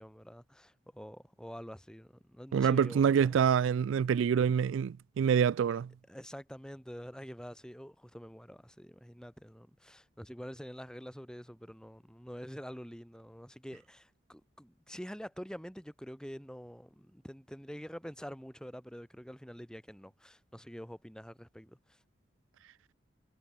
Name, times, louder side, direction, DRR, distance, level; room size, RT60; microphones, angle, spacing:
voice 1, 0.0-3.4 6.1-22.0, equal, 5° left, 6.4 m, -46 dB
voice 2, 2.5-5.9, right 7 dB, 90° right, 0.3 m, -26 dB
head